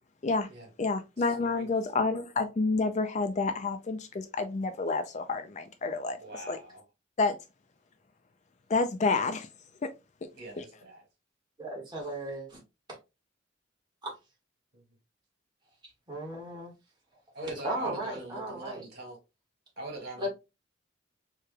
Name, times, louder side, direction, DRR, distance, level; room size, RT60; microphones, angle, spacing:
voice 1, 0.8-6.2 6.5-6.6 7.2-7.4 8.7-9.5 10.6-10.7, left 3 dB, 35° left, 0.4 m, -29 dB
voice 2, 1.4-1.7 6.2-6.8 10.3-11.0 14.7-14.8 17.3-19.2 19.8-20.3, right 2 dB, 55° right, 2.1 m, -42 dB
voice 3, 11.6-12.6 12.9-13.0 14.0-14.1 15.8-16.7 17.6-18.9 20.2-20.3, right 1 dB, 20° right, 1.6 m, -36 dB
4.7 x 3.2 x 2.2 m
head